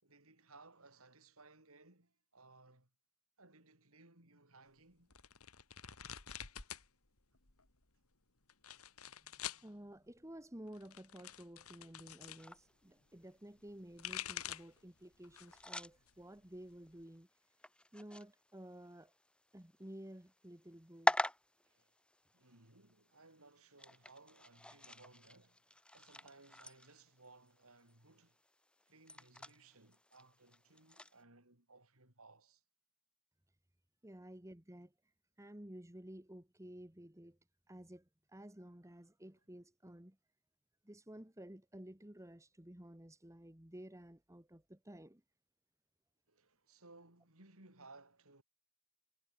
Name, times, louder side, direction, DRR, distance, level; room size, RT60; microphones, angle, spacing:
voice 1, 0.0-2.9 3.4-5.1 21.6-21.9 22.3-28.4 28.9-32.6 46.3-48.4, right 3 dB, 65° right, 5.6 m, -62 dB
sound 1, 5.1-6.9 7.2-7.8 8.5-9.7 10.7-12.4 13.7-14.8 15.2-15.7 16.1-17.0, left 10 dB, 75° left, 3.4 m, -47 dB
voice 2, 9.6-17.3 17.9-19.1 19.5-21.1 34.0-34.9 35.4-37.4 37.7-40.2 40.8-45.2, right 1 dB, 15° right, 1.7 m, -53 dB
sound 2, 12.4-31.2, left 1 dB, 5° left, 1.7 m, -45 dB
head